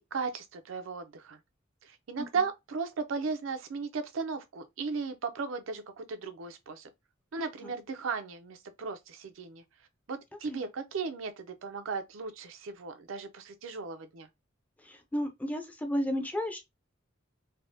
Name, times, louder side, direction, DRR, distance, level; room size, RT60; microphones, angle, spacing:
voice 1, 0.0-1.4 1.8-6.9 7.3-9.6 10.1-14.3, right 5 dB, 70° right, 0.5 m, -36 dB
voice 2, 14.8-16.7, equal, 10° left, 0.5 m, -33 dB
3.3 x 2.1 x 2.6 m
head